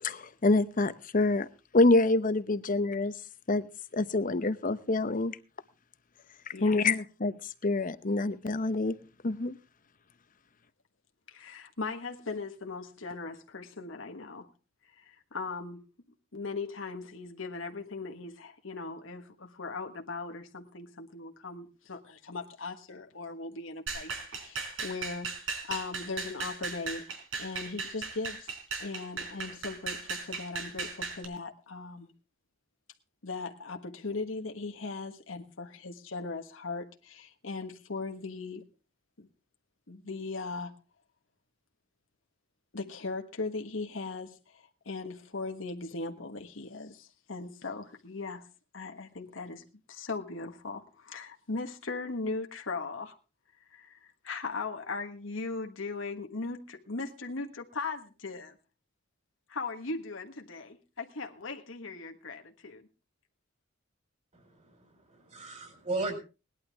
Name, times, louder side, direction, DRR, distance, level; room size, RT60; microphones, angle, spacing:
voice 1, 0.0-1.5 1.7-3.1 3.5-3.7 3.9-5.4 6.6-7.3 7.6-8.9 9.2-9.6, left 2 dB, 45° left, 0.8 m, -26 dB
voice 2, 11.3-14.5 15.0-15.8 16.3-32.1 33.2-38.6 39.2-39.3 39.9-40.7 42.7-48.4 48.7-49.6 49.9-53.2 53.7-54.0 54.2-58.6 59.5-62.9, left 3 dB, 85° left, 1.4 m, -39 dB
sound 1, 23.9-31.2, right 4 dB, 85° right, 4.4 m, -37 dB
voice 3, 64.3-66.2, right 2 dB, 40° right, 4.6 m, -36 dB
19.0 x 11.5 x 3.5 m
head